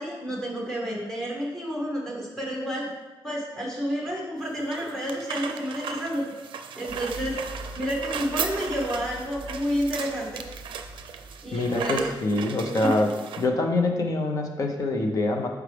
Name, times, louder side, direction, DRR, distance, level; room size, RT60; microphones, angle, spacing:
voice 1, 0.0-2.9 3.2-6.2 6.7-7.4 7.8-10.4 11.4-12.1 12.8-12.9, equal, 5° left, -2 dB, 1.0 m, -30 dB
sound 1, 4.4-13.5, right 7 dB, 90° right, 0.5 m, -36 dB
sound 2, 6.9-12.2, right 1 dB, 35° right, 0.5 m, -44 dB
voice 2, 11.5-13.1 13.4-15.5, left 2 dB, 45° left, 3 dB, 0.7 m, -25 dB
6.3 x 4.8 x 3.3 m, 1.2 s
wide cardioid pair, 165°, 8 cm